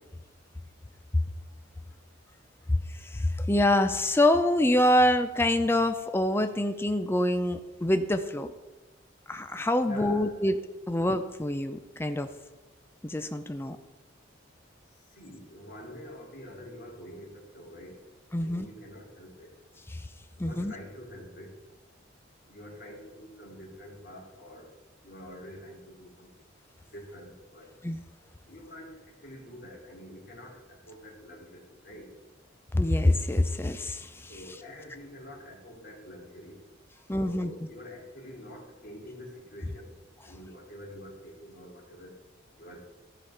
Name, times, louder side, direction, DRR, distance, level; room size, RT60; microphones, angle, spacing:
voice 1, 2.7-8.5 9.3-10.6 10.9-12.3 13.0-13.8 18.3-18.7 19.9-20.0 20.4-20.7 27.8-28.0 32.7-34.3 37.1-37.5, left 1 dB, 10° left, 8 dB, 0.5 m, -25 dB
voice 2, 9.8-10.5 14.8-18.0 18.4-19.6 20.4-21.6 22.5-26.4 26.9-27.8 28.5-32.2 34.3-36.7 37.2-39.9 40.2-42.2 42.6-42.8, left 1 dB, 50° left, -2 dB, 2.7 m, -46 dB
13.5 x 5.1 x 5.6 m, 1.1 s
head